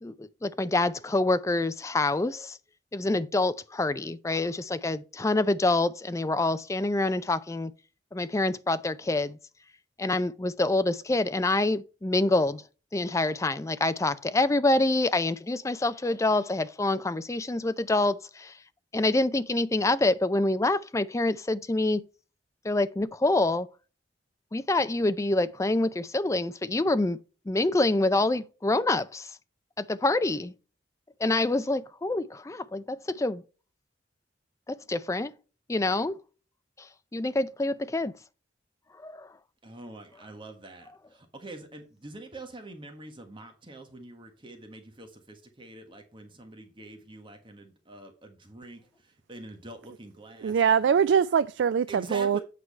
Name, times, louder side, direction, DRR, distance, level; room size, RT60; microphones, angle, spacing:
voice 1, 0.0-2.6 2.9-7.7 8.1-9.4 10.0-12.6 12.9-18.5 18.9-22.0 22.6-23.7 24.5-27.2 27.5-29.4 29.8-30.5 31.2-33.4 34.7-35.3 35.7-36.2 36.8-36.9 37.1-38.1 39.0-39.3, left 2 dB, 15° left, 0.4 m, -26 dB
voice 2, 39.6-50.6 51.9-52.4, right 2 dB, 30° right, 1.5 m, -45 dB
voice 3, 50.4-52.4, right 7 dB, 80° right, 0.3 m, -23 dB
8.4 x 4.7 x 4.3 m
head